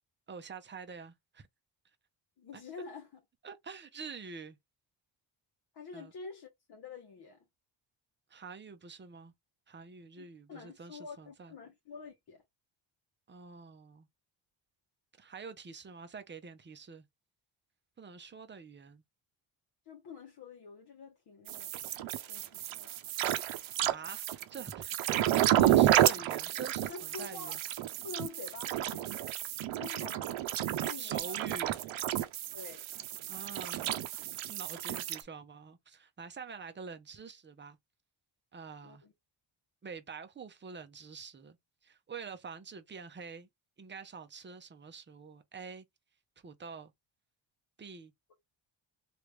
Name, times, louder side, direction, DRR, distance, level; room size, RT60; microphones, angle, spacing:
voice 1, 0.3-1.5 2.5-2.6 3.4-4.6 5.9-6.1 8.3-9.3 9.7-11.5 13.3-14.1 15.2-17.1 18.0-19.0 23.8-27.6 31.0-31.8 33.3-33.9 34.5-37.8 38.5-39.0 39.8-41.6 41.8-43.5 43.8-45.9 46.4-46.9 47.8-48.1, right 5 dB, 25° right, 0.6 m, -46 dB
voice 2, 2.4-3.2 5.7-7.4 10.2-12.4 19.9-21.7 22.3-22.9 26.9-27.6 28.0-29.3 29.8-30.5 30.8-31.6 32.5-32.9 38.8-39.1, left 4 dB, 55° left, 0.9 m, -47 dB
sound 1, 21.5-35.2, right 13 dB, 80° right, 0.7 m, -31 dB
3.2 x 2.5 x 3.0 m
cardioid pair, 120°, 47 cm